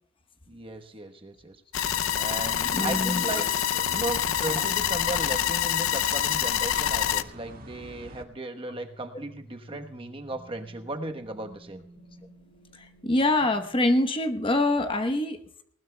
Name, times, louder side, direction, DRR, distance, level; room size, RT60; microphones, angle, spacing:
voice 1, 0.5-1.6 2.2-3.5 3.9-11.9, right 2 dB, 25° right, 5 dB, 1.1 m, -36 dB
sound 1, 1.7-7.2, left 10 dB, 75° left, 0.5 m, -26 dB
sound 2, 1.8-8.2, right 1 dB, 45° right, 1.5 m, -44 dB
voice 2, 2.7-3.4 12.7-15.6, left 2 dB, 25° left, 7 dB, 1.0 m, -25 dB
sound 3, 8.7-13.8, equal, 55° left, 2.1 m, -52 dB
19.5 x 19.0 x 2.2 m, 0.64 s
head